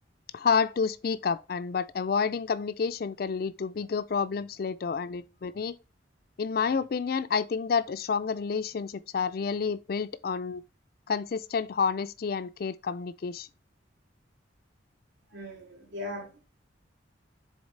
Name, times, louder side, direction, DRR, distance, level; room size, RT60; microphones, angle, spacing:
voice 1, 0.3-5.8 6.4-10.6 11.1-13.5, left 5 dB, 50° left, 0.4 m, -29 dB
voice 2, 15.3-16.5, left 1 dB, 75° right, 3.5 m, -39 dB
7.2 x 4.1 x 3.2 m
head